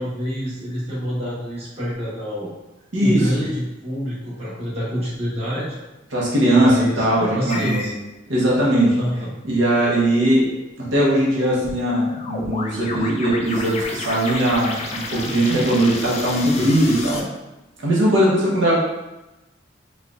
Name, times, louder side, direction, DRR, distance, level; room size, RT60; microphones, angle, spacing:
voice 1, 0.0-2.5 3.0-5.8 6.5-7.9 9.0-9.3, equal, 35° right, -8 dB, 1.1 m, -27 dB
voice 2, 2.9-3.3 6.1-7.9 8.3-9.0 9.4-10.5 10.8-17.2 17.8-18.8, right 1 dB, 85° right, -5 dB, 0.9 m, -19 dB
sound 1, 7.5-7.9 11.6-17.2, left 3 dB, 35° left, 0.4 m, -31 dB
4.3 x 2.3 x 2.4 m, 1.0 s
head